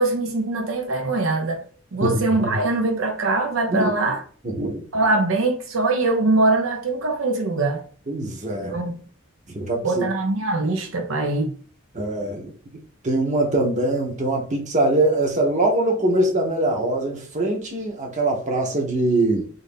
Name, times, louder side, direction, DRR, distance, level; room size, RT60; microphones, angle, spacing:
voice 1, 0.0-1.6 1.9-4.2 4.9-7.8 8.6-9.0 9.8-11.5, right 2 dB, 90° right, 0.6 m, -22 dB
voice 2, 2.0-2.6 3.7-3.9 4.4-4.9 8.1-8.8 9.5-10.0 11.9-12.5 13.0-19.5, right 2 dB, 40° right, 0.8 m, -23 dB
2.6 x 2.6 x 3.5 m
head